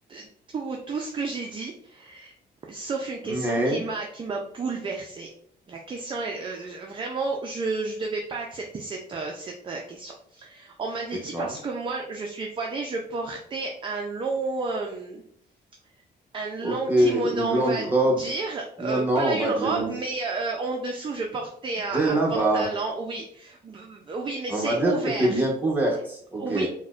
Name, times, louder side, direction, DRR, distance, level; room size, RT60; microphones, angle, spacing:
voice 1, 0.5-2.3 2.7-5.3 5.7-15.2 16.3-17.8 18.2-25.4 26.4-26.7, right 3 dB, 30° right, 1 dB, 0.4 m, -31 dB
voice 2, 3.2-3.8 11.3-11.6 16.6-18.2 18.8-19.9 21.9-22.7 24.5-26.7, right 1 dB, 10° right, -2 dB, 0.9 m, -24 dB
4.0 x 2.1 x 2.3 m, 0.65 s
cardioid pair, 115°, 17 cm